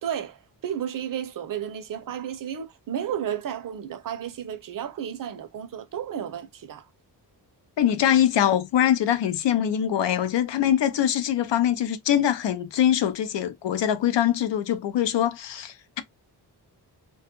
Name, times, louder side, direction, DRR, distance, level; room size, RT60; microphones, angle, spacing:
voice 1, 0.0-6.9, right 9 dB, 55° right, 0.5 m, -33 dB
voice 2, 7.8-16.0, left 10 dB, 90° left, 0.6 m, -23 dB
2.2 x 2.1 x 2.8 m
wide cardioid pair, 85°, 42 cm